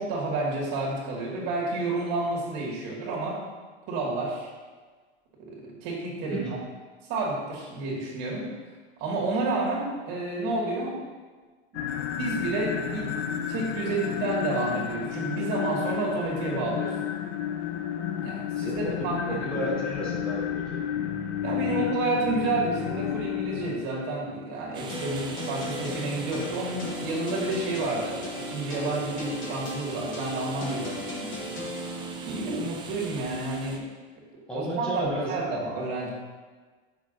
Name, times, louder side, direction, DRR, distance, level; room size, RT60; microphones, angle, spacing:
voice 1, 0.0-3.4 3.9-4.5 5.4-6.5 7.1-8.5 9.0-11.0 11.7-16.9 18.2-19.7 21.4-31.3 32.2-33.8 34.5-36.1, right 2 dB, 50° right, -3 dB, 2.2 m, -30 dB
sound 1, 11.7-23.8, left 9 dB, 85° left, 0.7 m, -31 dB
voice 2, 18.5-20.8 21.7-21.8 32.6-32.7 34.5-35.3, right 1 dB, 5° left, -8 dB, 0.8 m, -33 dB
sound 2, 24.7-33.8, right 4 dB, 15° right, 0.4 m, -42 dB
sound 3, 24.9-32.5, left 1 dB, 35° left, 1.1 m, -36 dB
8.1 x 6.1 x 2.6 m, 1.4 s
supercardioid pair, 150°, 34 cm